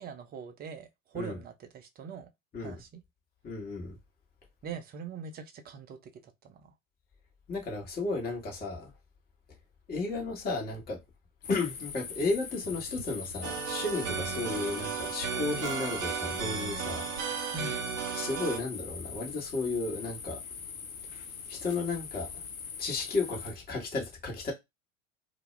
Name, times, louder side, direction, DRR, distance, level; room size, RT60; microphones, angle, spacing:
voice 1, 0.0-2.3 2.6-3.0 4.6-6.7 17.5-17.9, right 5 dB, 25° right, 0.5 m, -43 dB
voice 2, 3.4-4.0 7.5-8.9 9.9-11.0 11.5-17.1 18.1-20.4 21.5-22.3 22.8-24.5, left 3 dB, 20° left, 1.0 m, -33 dB
sound 1, 11.4-23.5, left 6 dB, 85° left, 0.6 m, -42 dB
sound 2, 13.4-18.6, right 7 dB, 65° right, 0.7 m, -34 dB
2.2 x 2.0 x 3.0 m
figure-of-eight pair, 80°, 41 cm